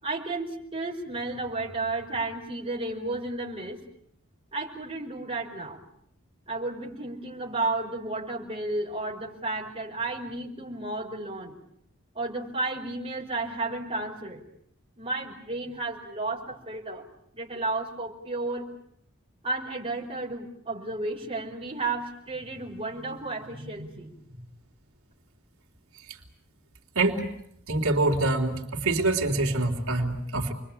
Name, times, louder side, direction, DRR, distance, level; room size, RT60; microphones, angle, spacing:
voice 1, 0.0-3.8 4.5-5.8 6.5-11.6 12.1-14.4 15.0-17.0 17.3-18.7 19.4-24.5, right 2 dB, 25° right, -2 dB, 4.9 m, -33 dB
voice 2, 27.0-27.3 27.7-30.5, right 2 dB, 85° right, 2 dB, 3.7 m, -25 dB
29.5 x 22.5 x 8.7 m, 0.71 s
head